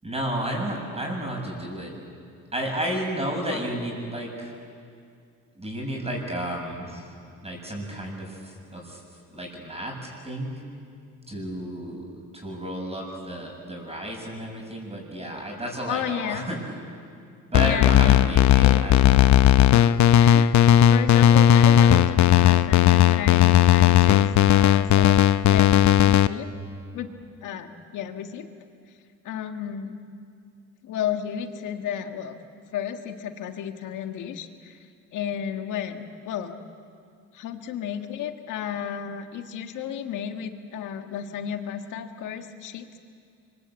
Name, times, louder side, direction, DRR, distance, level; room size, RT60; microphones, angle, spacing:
voice 1, 0.0-1.9 2.5-4.5 5.6-7.1 7.4-9.0 9.3-10.5 11.3-12.1 12.3-16.6 17.5-19.4, right 1 dB, 20° right, 0 dB, 7.2 m, -32 dB
voice 2, 15.9-16.5 17.6-18.2 18.5-18.8 20.2-26.5 26.9-27.1 27.4-28.5 29.2-30.0 30.8-32.4 32.7-34.8 35.1-36.5 37.3-42.9, left 9 dB, 85° left, 6 dB, 1.7 m, -33 dB
sound 1, 17.5-26.3, left 11 dB, 70° left, 0.8 m, -16 dB
25.5 x 23.0 x 8.4 m, 2.3 s
cardioid pair, 90°, 30 cm